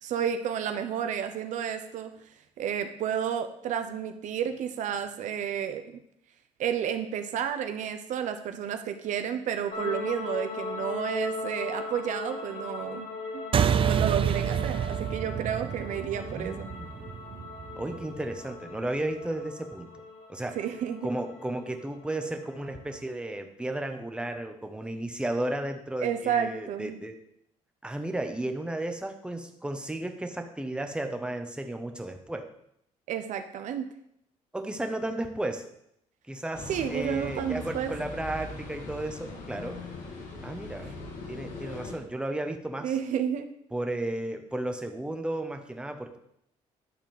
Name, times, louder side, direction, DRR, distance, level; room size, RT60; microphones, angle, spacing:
voice 1, 0.0-2.1 2.6-5.8 6.6-13.1 13.3-13.4 13.9-16.7 20.6-21.1 26.0-27.0 33.1-33.9 36.7-37.9 42.8-43.5, right 8 dB, 75° right, 8 dB, 0.9 m, -31 dB
sound 1, 9.7-23.0, left 4 dB, 60° left, 2.0 m, -39 dB
sound 2, 13.5-18.3, right 8 dB, 45° right, 0.6 m, -28 dB
voice 2, 16.2-17.0 17.8-20.0 20.3-20.6 21.0-27.1 27.8-32.5 34.5-35.6 36.3-39.8 40.4-40.9 41.3-43.0 43.7-46.2, right 1 dB, 5° right, 5 dB, 1.2 m, -34 dB
sound 3, 36.5-41.9, left 3 dB, 85° left, 2.4 m, -40 dB
11.0 x 4.2 x 7.1 m, 0.74 s
cardioid pair, 90°, 13 cm